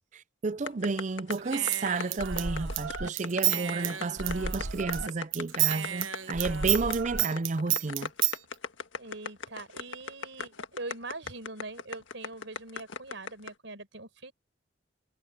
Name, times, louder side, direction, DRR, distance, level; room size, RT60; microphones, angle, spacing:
voice 1, 0.4-8.1, right 4 dB, 40° right, 0.5 m, -31 dB
sound 1, 0.7-13.5, left 5 dB, 80° left, 1.6 m, -37 dB
Human voice / Scissors, 1.3-5.1 5.3-8.4, right 10 dB, 90° right, 1.3 m, -31 dB
voice 2, 9.0-14.3, right 2 dB, 70° right, 5.2 m, -42 dB
head